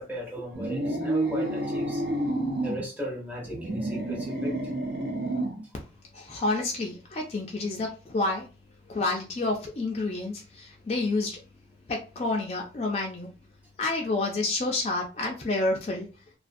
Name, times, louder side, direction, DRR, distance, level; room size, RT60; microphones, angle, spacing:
voice 1, 0.0-2.0 2.6-4.6, equal, 10° right, 0.7 m, -36 dB
sound 1, 0.5-2.8 3.4-5.6, right 1 dB, 60° right, 0.7 m, -29 dB
voice 2, 6.1-8.5 8.9-11.4 11.9-13.3 13.8-16.1, left 2 dB, 35° left, 0.3 m, -29 dB
2.4 x 2.3 x 2.5 m
head